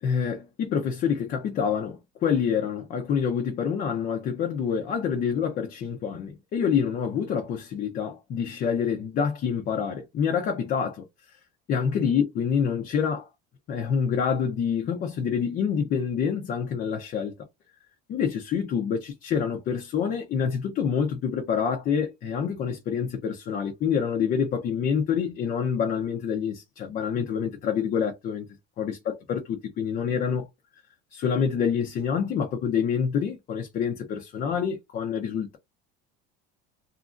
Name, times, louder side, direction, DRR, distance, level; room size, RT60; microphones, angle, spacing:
voice 1, 0.0-11.0 11.7-13.3 13.7-17.3 18.1-28.5 28.8-30.5 31.1-35.6, left 7 dB, 30° left, 0.4 m, -27 dB
2.9 x 2.5 x 2.3 m
cardioid pair, 160°, 29 cm